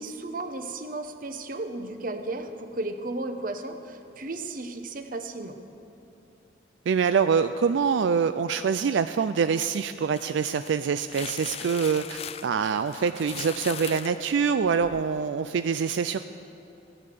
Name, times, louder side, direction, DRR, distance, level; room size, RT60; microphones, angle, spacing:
voice 1, 0.0-5.6, right 2 dB, 45° right, 7 dB, 0.9 m, -34 dB
voice 2, 6.9-16.2, right 6 dB, 75° right, 10 dB, 0.4 m, -25 dB
sound 1, 10.0-15.1, left 8 dB, 35° left, 0.4 m, -40 dB
16.0 x 9.9 x 6.8 m, 3.0 s
head